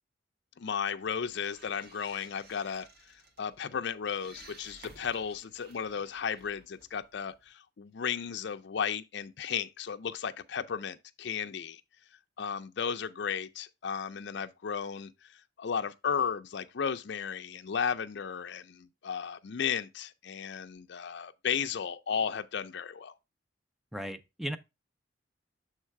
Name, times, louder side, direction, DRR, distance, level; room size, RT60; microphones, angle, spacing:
voice 1, 0.6-2.9 3.4-11.8 12.4-23.1, left 7 dB, 60° left, 0.4 m, -34 dB
sound 1, 1.0-7.5, right 2 dB, 55° right, 1.3 m, -56 dB
voice 2, 23.9-24.6, equal, ahead, 0.4 m, -36 dB
7.4 x 3.2 x 4.6 m
head